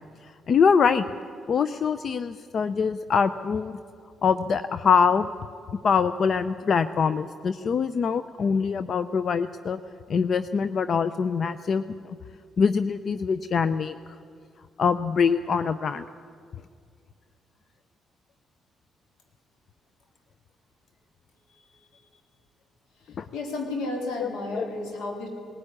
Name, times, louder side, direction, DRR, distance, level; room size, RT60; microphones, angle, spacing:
voice 1, 0.5-1.1 1.5-3.8 4.2-5.3 5.8-9.8 10.1-11.8 12.6-13.9 14.8-16.0 23.2-23.3 24.2-24.3 24.6-24.7, left 6 dB, 50° left, 13 dB, 0.5 m, -23 dB
voice 2, 23.3-25.3, left 2 dB, 90° left, 2 dB, 3.8 m, -32 dB
19.0 x 15.0 x 9.9 m, 2.2 s
cardioid pair, 90°, 0 cm